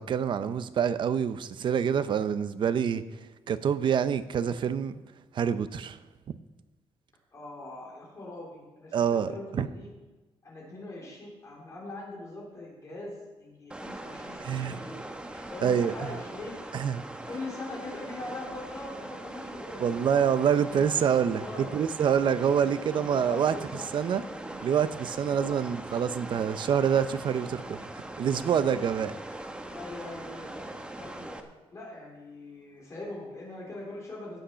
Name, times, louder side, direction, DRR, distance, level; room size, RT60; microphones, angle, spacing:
voice 1, 0.0-3.0 3.5-5.0 5.3-6.0 8.9-9.7 14.4-14.8 15.6-15.9 16.7-17.0 19.8-21.4 21.7-23.5 23.9-24.2 24.6-29.1, right 8 dB, 50° right, 0.6 m, -26 dB
voice 2, 7.3-9.9 10.4-15.1 15.5-16.6 17.3-20.1 20.6-20.9 21.3-21.7 22.6-23.9 25.2-25.6 28.4-31.4 31.7-34.4, left 2 dB, 30° left, 3.5 m, -42 dB
sound 1, 13.7-31.4, right 1 dB, 10° right, 0.9 m, -41 dB
17.0 x 6.5 x 5.7 m
cardioid pair, 145°, 10 cm